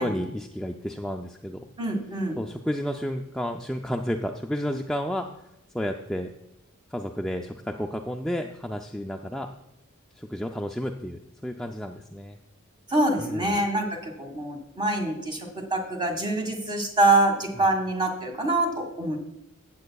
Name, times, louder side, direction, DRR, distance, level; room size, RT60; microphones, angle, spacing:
voice 1, 0.0-1.6 2.4-5.3 5.7-6.3 6.9-9.5 10.2-12.4 13.2-13.6, equal, 5° left, 2 dB, 0.4 m, -31 dB
voice 2, 1.8-2.4 12.9-19.2, right 2 dB, 20° right, 3 dB, 1.7 m, -25 dB
14.5 x 8.3 x 2.3 m, 0.85 s
head